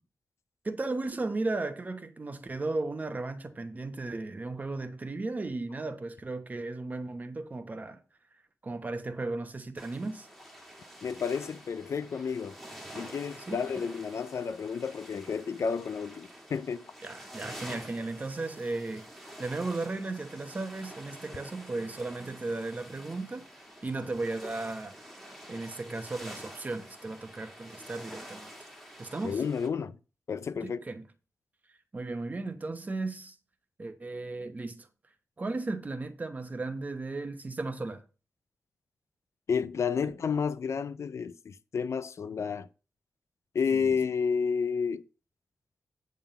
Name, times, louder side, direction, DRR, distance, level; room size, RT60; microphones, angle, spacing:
voice 1, 0.6-8.0 8.6-10.3 13.5-13.6 17.0-24.9 25.5-28.5 29.0-29.4 30.6-31.0 31.9-33.4 33.8-34.9 35.4-38.0 40.0-40.1 43.7-43.9, right 3 dB, 30° right, 1.0 m, -35 dB
sound 1, 9.8-29.7, equal, 5° left, 1.8 m, -48 dB
voice 2, 11.0-12.6 13.0-16.9 29.2-30.0 30.3-30.8 39.5-42.7 43.5-45.0, left 6 dB, 65° left, 0.4 m, -31 dB
9.0 x 3.6 x 6.8 m
wide cardioid pair, 140°, 5 cm